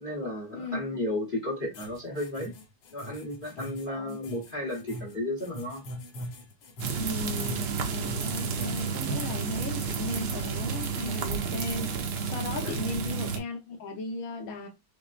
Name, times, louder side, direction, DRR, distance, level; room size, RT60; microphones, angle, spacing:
voice 1, 0.0-2.5 2.9-5.8 12.6-12.7, left 1 dB, 35° left, 0.9 m, -33 dB
rubber sample, 1.7-12.0, equal, 75° left, 1.7 m, -43 dB
voice 2, 3.9-4.2 6.9-11.9 12.2-14.7, left 3 dB, 55° left, 1.1 m, -36 dB
sound 1, 6.8-13.4, right 6 dB, 65° right, 1.1 m, -31 dB
5.9 x 2.1 x 2.4 m
omnidirectional pair, 2.1 m